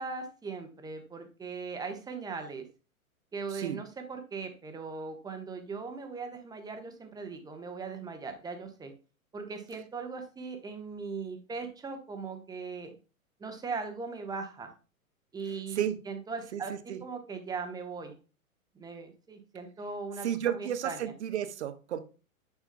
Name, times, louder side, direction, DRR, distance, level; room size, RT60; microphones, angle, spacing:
voice 1, 0.0-2.7 3.3-8.9 9.3-12.9 13.4-14.7 15.3-18.2 18.7-21.1, right 4 dB, 10° right, 1.2 m, -39 dB
voice 2, 15.5-16.0 16.5-16.6 16.9-17.0 20.2-22.0, right 10 dB, 50° right, 1.1 m, -32 dB
9.6 x 6.1 x 2.2 m
figure-of-eight pair, 110°, 43 cm